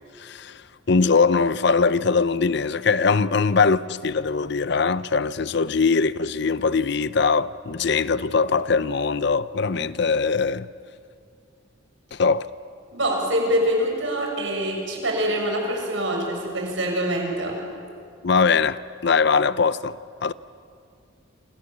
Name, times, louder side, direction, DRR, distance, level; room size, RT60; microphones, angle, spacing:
voice 1, 0.2-0.6 0.9-10.7 12.1-12.5 18.2-20.3, left 4 dB, 55° left, 0.6 m, -21 dB
voice 2, 12.9-17.6, equal, 70° right, 7.1 m, -25 dB
28.5 x 28.0 x 7.4 m
head